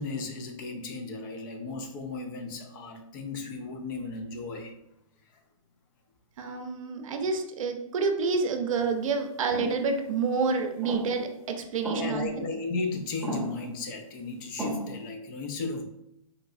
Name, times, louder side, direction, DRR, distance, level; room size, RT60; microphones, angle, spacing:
voice 1, 0.0-4.7 11.9-15.8, left 3 dB, 35° left, 4 dB, 0.5 m, -35 dB
voice 2, 6.4-12.4, right 4 dB, 65° right, 5 dB, 0.6 m, -28 dB
sound 1, 9.5-9.8 10.8-11.2 11.8-12.4 13.2-13.7 14.6-15.1, right 1 dB, ahead, 0.8 m, -34 dB
3.9 x 2.2 x 2.6 m, 0.79 s
hypercardioid pair, 140°, 18 cm